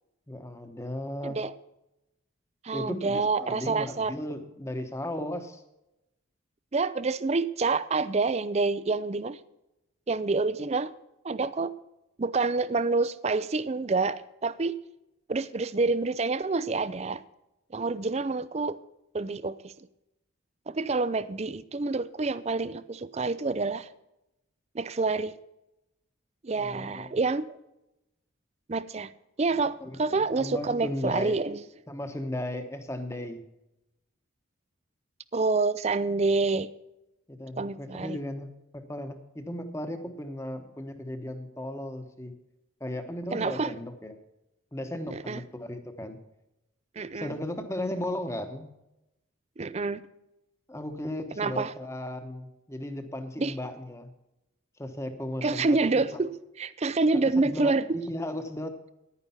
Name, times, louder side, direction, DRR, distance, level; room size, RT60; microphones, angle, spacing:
voice 1, 0.3-1.4 2.7-5.6 26.6-27.2 29.8-31.4 31.9-33.4 37.3-42.3 42.8-44.2 44.7-46.2 47.1-48.7 50.7-54.1 54.8-56.0 57.1-58.8, left 1 dB, 15° left, 1.0 m, -36 dB
voice 2, 2.6-4.1 6.7-9.4 10.1-10.9 11.2-11.7 12.2-14.8 15.3-17.2 17.7-18.8 19.1-19.7 20.7-23.9 24.7-25.3 26.4-27.6 28.7-29.1 29.4-31.6 35.3-36.7 37.6-38.2 43.3-43.7 45.1-45.4 47.0-47.3 49.6-50.0 51.4-51.7 53.4-53.5 55.4-56.3 56.6-58.0, right 3 dB, 30° right, 0.4 m, -27 dB
10.5 x 9.8 x 5.7 m
head